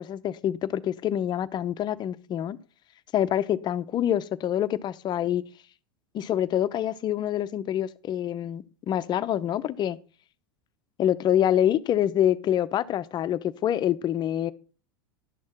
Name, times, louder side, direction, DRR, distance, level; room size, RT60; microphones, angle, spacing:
voice 1, 0.0-2.6 3.1-5.4 6.1-10.0 11.0-14.5, left 11 dB, 35° left, 0.8 m, -26 dB
12.0 x 6.4 x 6.0 m
hypercardioid pair, 105°, 12 cm